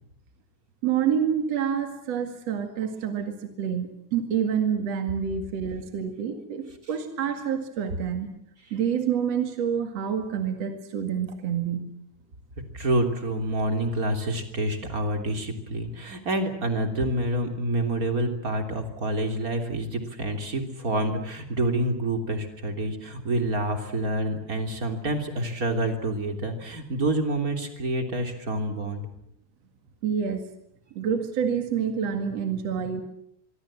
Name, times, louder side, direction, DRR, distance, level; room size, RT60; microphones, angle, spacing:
voice 1, 0.8-8.3 8.7-11.9 30.0-30.5 30.9-33.0, right 8 dB, 55° right, 6 dB, 3.0 m, -27 dB
voice 2, 12.7-29.0, right 1 dB, 25° right, 5 dB, 3.4 m, -27 dB
25.0 x 24.0 x 7.6 m, 0.74 s
omnidirectional pair, 3.6 m